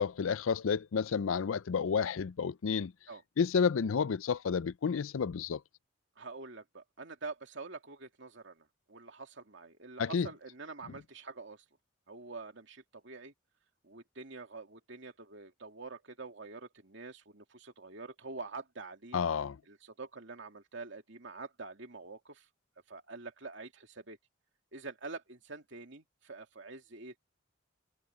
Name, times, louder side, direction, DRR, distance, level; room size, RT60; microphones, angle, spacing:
voice 1, 0.0-2.9 3.4-5.6 10.0-10.3 19.1-19.6, left 6 dB, 90° left, 0.5 m, -30 dB
voice 2, 6.2-11.6 12.1-13.3 13.8-19.2 19.7-22.5 22.9-24.2 24.7-27.2, right 3 dB, 65° right, 2.9 m, -46 dB
head